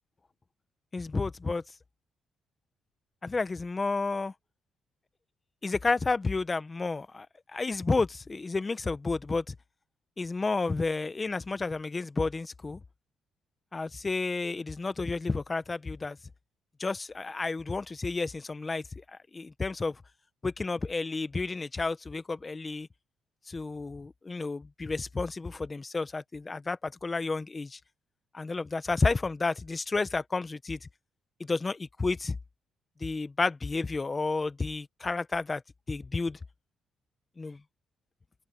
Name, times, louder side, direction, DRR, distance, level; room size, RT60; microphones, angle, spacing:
voice 1, 0.9-1.6 3.2-4.3 5.6-7.3 7.5-9.5 10.2-12.8 13.7-16.2 16.8-18.8 19.3-20.0 20.4-22.9 23.5-27.8 28.3-30.8 31.4-32.4 33.0-35.6 35.9-36.4 37.4-37.6, left 3 dB, 25° left, 1.1 m, -31 dB
cardioid pair, 90°, 0 cm